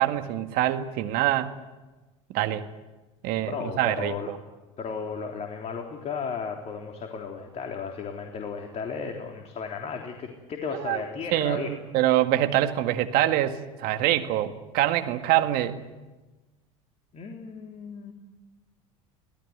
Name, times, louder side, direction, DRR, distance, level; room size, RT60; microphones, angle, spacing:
voice 1, 0.0-1.5 2.3-2.6 3.2-4.4 10.7-11.0 11.3-15.8, right 13 dB, 60° right, 8 dB, 2.0 m, -25 dB
voice 2, 3.5-4.3 4.8-11.8 17.1-18.1, left 5 dB, 40° left, 3 dB, 3.6 m, -35 dB
26.5 x 18.0 x 9.7 m, 1.2 s
hypercardioid pair, 80°, 17 cm